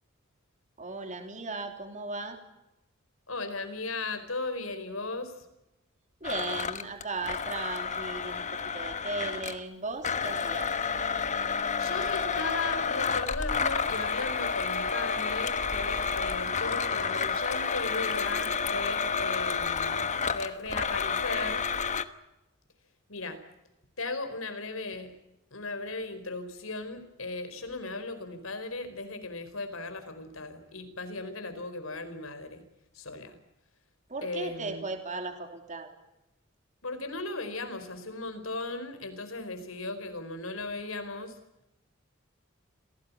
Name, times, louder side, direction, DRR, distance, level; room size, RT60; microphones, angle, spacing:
voice 1, 0.8-2.4 6.2-8.5 8.7-10.7 34.1-35.9, right 3 dB, 35° right, 5 dB, 3.2 m, -36 dB
voice 2, 3.3-5.3 11.8-21.7 23.1-23.4 24.0-25.1 25.5-32.6 32.9-33.4 34.2-34.9 36.8-41.4, left 3 dB, 80° left, 10 dB, 4.6 m, -37 dB
Domestic sounds home sounds, 6.2-9.6 10.0-22.0, left 5 dB, 35° left, 1.3 m, -30 dB
27.5 x 18.0 x 8.5 m, 0.93 s
head